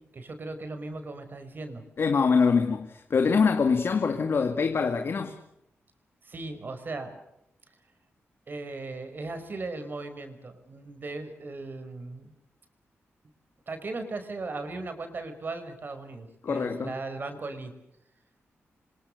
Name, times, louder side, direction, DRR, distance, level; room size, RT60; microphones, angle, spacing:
voice 1, 0.1-1.8 6.2-7.2 8.5-12.3 13.7-17.7, right 3 dB, 45° right, 5.3 m, -37 dB
voice 2, 2.0-5.3 16.4-16.9, left 5 dB, 55° left, 2.3 m, -24 dB
28.5 x 25.5 x 6.7 m
wide cardioid pair, 125°, 5 cm